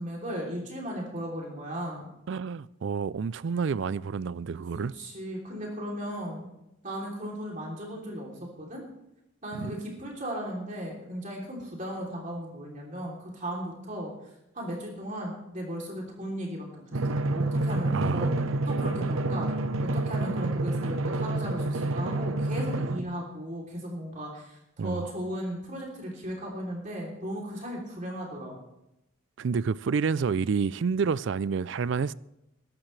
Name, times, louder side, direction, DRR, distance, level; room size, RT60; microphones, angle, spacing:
voice 1, 0.0-2.1 4.7-6.5 6.8-8.3 8.6-8.8 9.4-14.1 14.5-18.3 18.7-19.5 19.9-28.5, equal, 35° right, -2 dB, 3.2 m, -36 dB
voice 2, 2.3-4.9 9.5-9.7 17.9-18.3 24.8-25.1 29.4-32.1, right 5 dB, 60° right, 19 dB, 0.4 m, -29 dB
Drum, 16.9-23.0, right 2 dB, 80° right, 0.8 m, -28 dB
22.0 x 12.0 x 3.3 m, 0.87 s
head